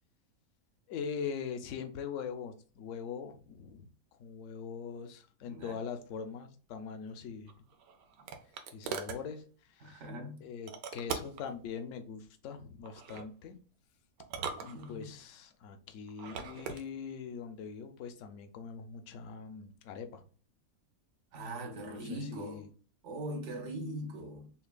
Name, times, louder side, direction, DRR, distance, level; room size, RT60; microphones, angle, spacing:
voice 1, 0.9-3.9 4.2-7.5 8.7-10.0 10.4-13.6 14.6-20.2 21.9-22.7, left 6 dB, 65° left, 0.9 m, -42 dB
voice 2, 5.5-5.8 9.8-10.5 14.6-15.1 21.3-22.7 23.0-24.5, right 1 dB, 60° right, 1.0 m, -41 dB
sound 1, 7.5-9.2 10.7-11.5 12.8-13.3 14.2-15.2 16.1-16.8, right 6 dB, 80° right, 1.1 m, -41 dB
5.7 x 2.3 x 2.2 m
omnidirectional pair, 1.5 m